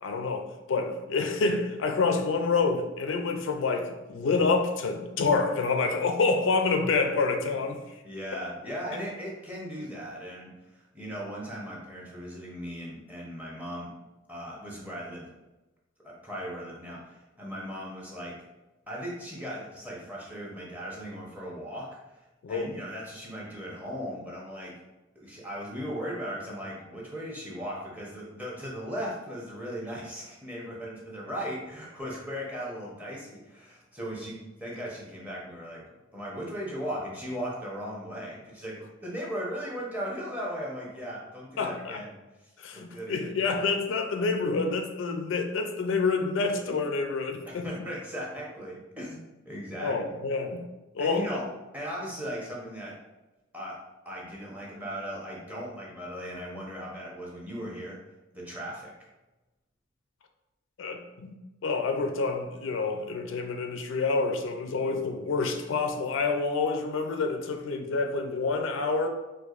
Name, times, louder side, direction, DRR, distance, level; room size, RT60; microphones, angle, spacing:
voice 1, 0.0-7.8 22.4-22.7 41.6-42.0 42.6-47.7 49.8-50.6 50.9-51.3 60.8-61.3 61.6-69.1, left 4 dB, 75° left, 5 dB, 0.4 m, -27 dB
voice 2, 8.0-13.9 14.3-15.3 16.0-18.3 18.9-22.2 22.5-24.7 25.1-35.8 36.1-42.2 42.7-43.4 47.5-50.0 51.0-51.5 51.7-52.9 53.5-53.8 54.0-58.0 58.3-58.9, equal, 10° right, -5 dB, 0.8 m, -37 dB
4.5 x 2.5 x 2.4 m, 1.1 s
head